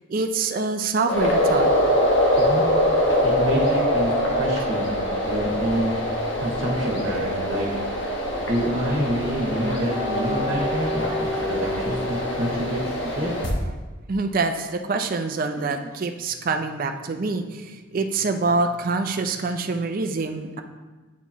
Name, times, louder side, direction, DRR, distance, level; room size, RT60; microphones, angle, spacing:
voice 1, 0.1-1.7 14.1-20.6, right 3 dB, 45° right, 6 dB, 0.4 m, -25 dB
sound 1, 1.1-13.5, equal, 65° left, 1.0 m, -23 dB
voice 2, 3.2-4.1 4.4-4.9 5.2-6.0 6.4-7.7 8.4-12.8 13.2-13.3 15.5-15.6, right 1 dB, 60° right, -4 dB, 1.2 m, -27 dB
8.2 x 4.5 x 3.0 m, 1.2 s
head